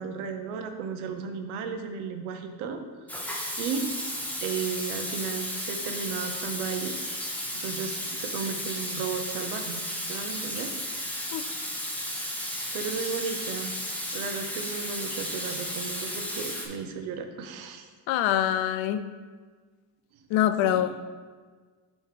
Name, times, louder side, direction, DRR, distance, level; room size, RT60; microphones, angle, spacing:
voice 1, 0.0-2.8 3.1-3.9 4.4-7.0 7.5-9.8 10.1-10.8 12.4-13.7 14.1-17.9 20.6-20.9, right 6 dB, 85° right, 6 dB, 0.8 m, -34 dB
Water tap faucet / Sink (filling or washing), 3.1-16.7, equal, 5° left, 0.9 m, -34 dB
voice 2, 18.1-19.1 20.3-20.9, left 11 dB, 70° left, 12 dB, 0.5 m, -24 dB
6.5 x 3.2 x 4.9 m, 1.5 s
supercardioid pair, 85°, 48 cm